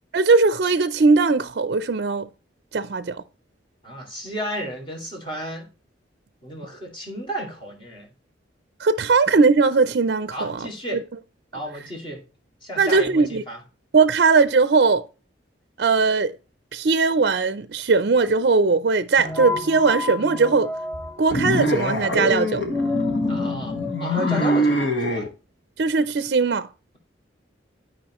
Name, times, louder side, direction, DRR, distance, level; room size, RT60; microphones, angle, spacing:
voice 1, 0.1-2.3 2.7-3.2 8.8-10.7 10.9-11.0 12.8-13.4 13.9-15.0 15.8-16.3 16.7-20.7 21.2-22.6 25.8-26.7, right 4 dB, 55° right, 0.4 m, -19 dB
voice 2, 3.8-5.7 6.4-8.1 10.3-11.0 11.5-12.2 12.6-13.6 23.3-25.3, equal, 25° left, 2.2 m, -33 dB
sound 1, 19.2-24.8, left 3 dB, 10° left, 0.6 m, -31 dB
sound 2, 21.3-25.3, equal, 75° left, 1.4 m, -24 dB
11.5 x 5.0 x 3.0 m
head